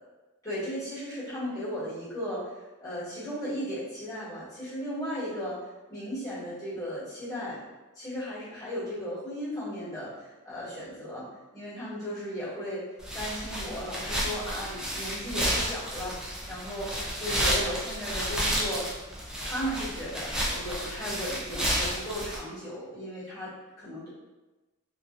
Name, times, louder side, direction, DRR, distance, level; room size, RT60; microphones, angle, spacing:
voice 1, 0.4-2.5 2.8-5.6 5.9-7.6 7.9-11.3 11.5-12.8 13.1-16.2 16.5-18.9 19.4-24.1, equal, 15° left, -12 dB, 1.4 m, -36 dB
sound 1, 13.0-22.4, equal, 5° right, 0.4 m, -31 dB
2.5 x 2.3 x 2.4 m, 1.1 s
head